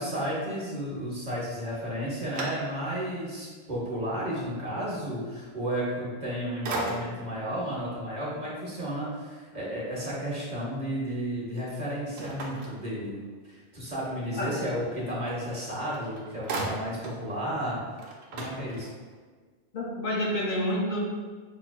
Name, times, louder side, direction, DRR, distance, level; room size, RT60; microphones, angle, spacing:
voice 1, 0.0-13.2 13.4-18.0 18.3-18.9, equal, 45° right, -6 dB, 1.0 m, -33 dB
sound 1, 1.7-3.1 3.7-3.8 6.0-6.3 6.6-7.4 12.2-13.4 15.5-15.6 15.9-17.3 17.6-17.7 17.9-19.2, right 2 dB, 85° right, 0.9 m, -37 dB
voice 2, 19.7-21.0, left 1 dB, 60° left, -3 dB, 0.7 m, -28 dB
5.5 x 2.3 x 2.2 m, 1.5 s
omnidirectional pair, 1.0 m